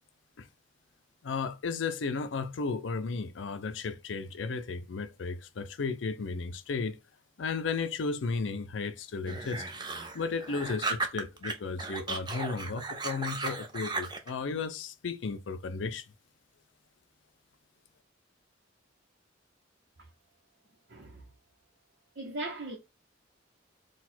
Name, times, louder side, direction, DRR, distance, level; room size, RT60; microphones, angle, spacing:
voice 1, 1.2-7.0 7.4-9.7 10.1-16.0, left 4 dB, 75° left, 0.5 m, -34 dB
sound 1, 9.3-11.5 11.8-14.3, right 3 dB, 25° right, 0.6 m, -35 dB
voice 2, 20.9-21.2 22.2-22.8, right 2 dB, 55° right, 0.9 m, -38 dB
4.0 x 2.3 x 4.4 m
head